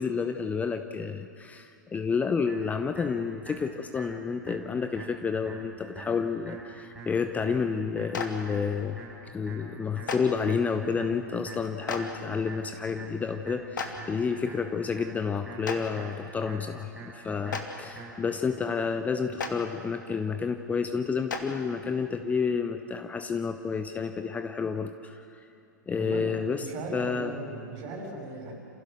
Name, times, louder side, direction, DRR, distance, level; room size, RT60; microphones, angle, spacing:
voice 1, 0.0-9.0 9.3-25.5 25.9-26.6 26.9-27.3, left 5 dB, 15° left, 8 dB, 0.7 m, -30 dB
sound 1, 2.5-18.4, right 2 dB, 5° right, 6.8 m, -46 dB
Clapping, 8.1-8.3 10.1-10.2 11.9-12.0 13.8-13.9 15.6-15.8 17.5-17.6 19.4-19.5 21.3-21.4, left 5 dB, 70° left, 2.2 m, -31 dB
voice 2, 25.9-28.5, right 2 dB, 40° right, 1 dB, 6.3 m, -38 dB
29.0 x 16.0 x 6.6 m, 2.8 s
figure-of-eight pair, 100°, 11 cm